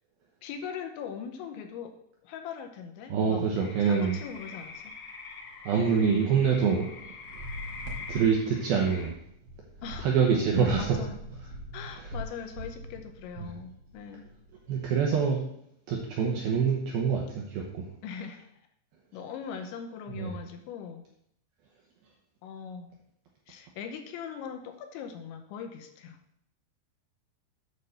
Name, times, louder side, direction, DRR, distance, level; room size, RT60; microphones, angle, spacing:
voice 1, 0.4-2.0 2.2-3.5 3.8-4.9 9.8-10.1 10.8-11.2 11.7-14.3 18.0-18.5 19.1-21.0 22.4-22.9 23.5-26.2, left 7 dB, 80° left, 6 dB, 3.0 m, -40 dB
voice 2, 3.1-4.2 5.7-6.9 8.1-9.1 10.0-11.0 14.7-15.4 15.9-17.9 20.1-20.3, right 6 dB, 80° right, -1 dB, 2.2 m, -25 dB
tree frogs, 3.6-9.1, left 4 dB, 60° left, 2.6 m, -44 dB
sound 1, 4.4-15.4, equal, 60° right, 3.4 m, -45 dB
9.0 x 4.1 x 6.5 m, 0.73 s
omnidirectional pair, 5.5 m